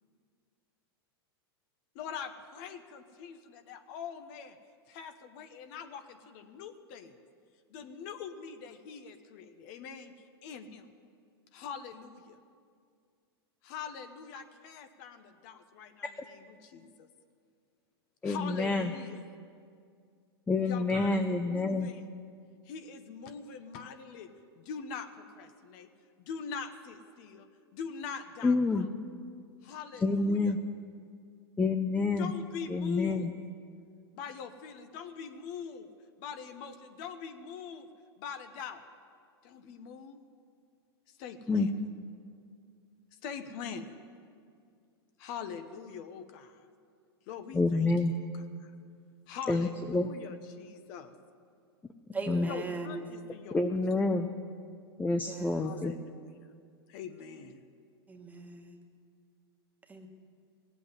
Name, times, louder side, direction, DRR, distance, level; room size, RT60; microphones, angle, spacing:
voice 1, 1.9-4.6 4.9-7.2 7.7-10.1 10.4-10.9 11.5-12.4 13.6-17.1 18.2-19.2 20.6-22.1 22.6-25.9 26.2-28.9 29.6-30.5 32.2-33.3 34.1-35.9 36.2-37.9 38.2-38.9 39.4-40.2 41.2-41.8 43.2-43.9 45.2-46.7 47.3-48.7 49.3-51.1 52.5-53.8 55.5-56.0 56.9-57.6, left 6 dB, 50° left, 8 dB, 1.1 m, -43 dB
voice 2, 18.2-18.9 20.5-21.9 28.4-28.9 30.0-30.6 31.6-32.3 32.7-33.3 41.5-41.7 47.5-48.1 49.5-50.1 52.3-52.5 53.5-54.3 55.0-55.9, left 3 dB, 10° left, 6 dB, 0.6 m, -28 dB
voice 3, 52.1-53.1 55.3-55.7 58.1-58.8 59.9-60.1, right 3 dB, 10° right, 3 dB, 1.5 m, -39 dB
16.5 x 8.2 x 9.6 m, 2.2 s
hypercardioid pair, 110°, 13 cm